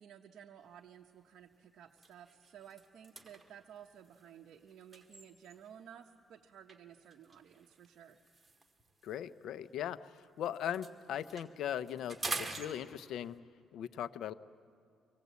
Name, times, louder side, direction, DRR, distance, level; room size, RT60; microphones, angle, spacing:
voice 1, 0.0-8.2, right 9 dB, 70° right, 2 dB, 0.9 m, -55 dB
sound 1, 0.7-1.0 1.4-1.5 1.9-5.8 6.7-10.2 10.5-13.4, right 3 dB, 20° right, 2.2 m, -46 dB
voice 2, 9.0-13.3 13.7-14.3, left 10 dB, 75° left, 14 dB, 0.7 m, -39 dB
25.0 x 19.0 x 8.3 m, 2.4 s
cardioid pair, 90°, 0 cm